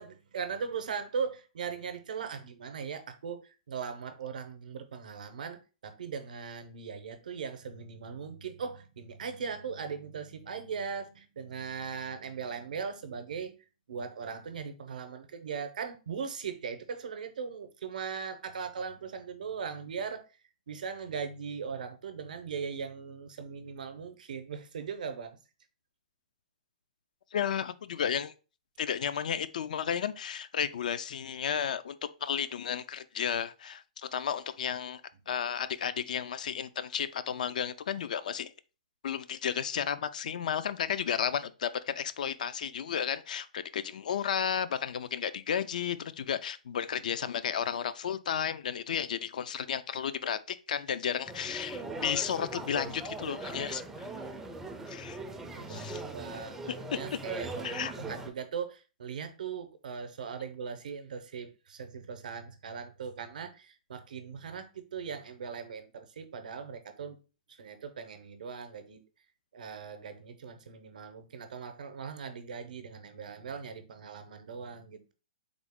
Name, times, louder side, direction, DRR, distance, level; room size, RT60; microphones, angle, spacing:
voice 1, 0.0-13.6 13.9-20.3 20.7-25.4 35.3-35.4 55.5-67.2 67.5-69.0 69.5-75.1, right 6 dB, 75° right, 0.6 m, -39 dB
voice 2, 27.3-28.3 28.8-35.0 35.3-38.5 39.0-54.1 54.9-55.2 55.7-56.0 56.7-57.0 57.6-57.9, left 8 dB, 70° left, 0.3 m, -33 dB
sound 1, 51.2-58.3, right 2 dB, 5° right, 0.4 m, -40 dB
3.6 x 2.0 x 3.5 m
hypercardioid pair, 150°, 4 cm